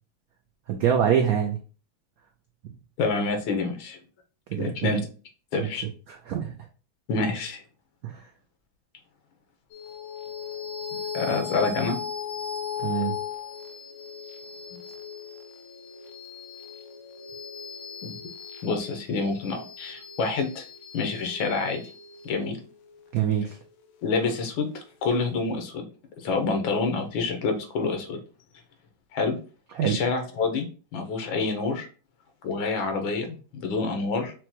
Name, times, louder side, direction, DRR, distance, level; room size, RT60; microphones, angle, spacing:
voice 1, 0.7-1.6 4.5-5.0 5.6-5.7 6.1-6.5 8.0-8.3 12.8-13.2 23.1-23.6 29.7-30.0, right 9 dB, 90° right, 3 dB, 0.7 m, -25 dB
voice 2, 3.0-4.0 4.6-5.0 5.5-5.9 7.1-7.6 11.1-12.0 18.0-18.2 18.6-20.6 20.9-21.8 22.2-22.6 24.0-25.8 26.2-28.2 29.1-29.4 29.8-30.7 30.9-31.9 32.4-34.3, left 4 dB, 90° left, 5 dB, 1.6 m, -27 dB
sound 1, 9.7-24.5, left 8 dB, 75° left, 1.3 m, -38 dB
5.9 x 2.2 x 2.8 m, 0.37 s
omnidirectional pair, 2.1 m